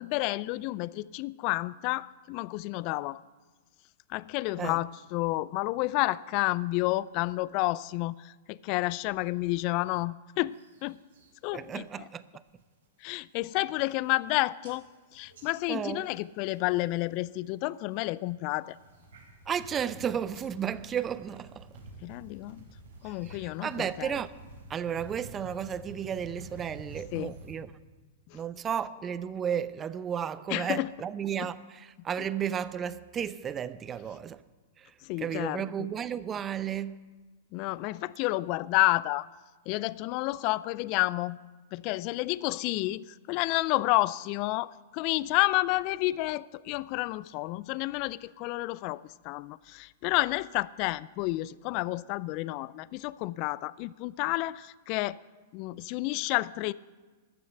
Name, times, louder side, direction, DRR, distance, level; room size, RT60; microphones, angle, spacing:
voice 1, 0.0-3.2 4.1-10.6 10.8-11.0 11.4-12.1 13.0-14.8 15.1-18.8 22.0-22.6 23.0-24.1 27.1-27.3 28.3-28.4 30.5-30.9 35.0-35.9 37.5-39.3 39.7-41.4 41.7-55.2 55.5-56.7, left 20 dB, 45° left, 0.3 m, -30 dB
sound 1, 10.5-11.3 11.7-12.1 12.5-12.9 13.3-13.4 13.6-14.3 14.6-17.2 17.5-18.0 18.5-27.6, right 2 dB, 80° right, 4.6 m, -50 dB
voice 2, 11.5-12.2 15.7-16.1 19.5-21.7 23.3-24.3 24.7-27.7 28.3-34.4 34.8-34.9 35.2-37.0, right 8 dB, 25° right, 0.6 m, -33 dB
13.5 x 6.9 x 7.9 m
hypercardioid pair, 110°, 0 cm